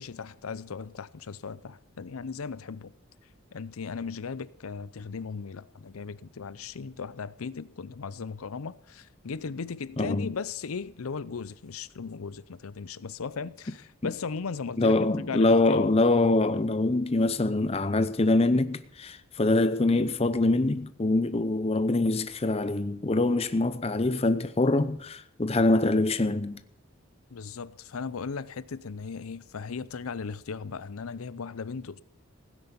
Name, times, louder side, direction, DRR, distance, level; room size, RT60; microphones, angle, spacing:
voice 1, 0.0-2.9 3.5-15.9 27.3-32.0, left 5 dB, 85° left, 0.6 m, -37 dB
voice 2, 10.0-10.3 14.0-14.1 14.8-26.6, left 2 dB, 30° left, 0.6 m, -24 dB
16.0 x 9.9 x 7.0 m
head